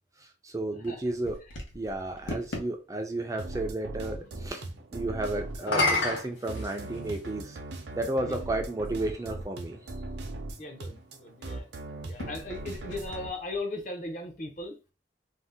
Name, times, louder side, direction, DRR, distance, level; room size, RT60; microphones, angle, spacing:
voice 1, 0.4-1.4 1.7-4.6 4.9-7.6 8.0-9.8, right 2 dB, 15° right, 0.3 m, -32 dB
sound 1, 0.8-2.7 5.5-7.3 8.2-8.3 12.0-13.6, left 2 dB, 90° left, 0.9 m, -32 dB
sound 2, 3.4-13.3, right 2 dB, 70° right, 0.5 m, -39 dB
voice 2, 10.6-11.7 12.1-14.8, left 2 dB, 45° left, 0.6 m, -38 dB
2.7 x 2.1 x 3.4 m
head